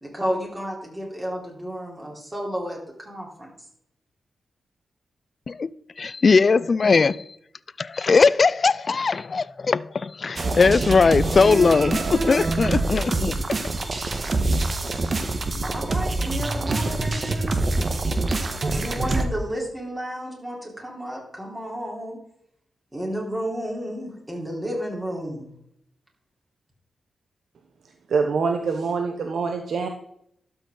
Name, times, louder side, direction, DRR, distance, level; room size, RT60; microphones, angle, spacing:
voice 1, 0.0-3.5 15.6-17.6 18.7-22.2 22.9-25.5, equal, 25° right, 3.9 m, -32 dB
voice 2, 6.0-7.2 7.8-13.4, left 4 dB, 50° left, 0.4 m, -19 dB
sound 1, 10.4-19.2, right 2 dB, 50° right, 1.2 m, -25 dB
voice 3, 28.1-29.9, right 5 dB, 70° right, 0.8 m, -24 dB
12.5 x 5.7 x 3.8 m
supercardioid pair, 45°, 0 cm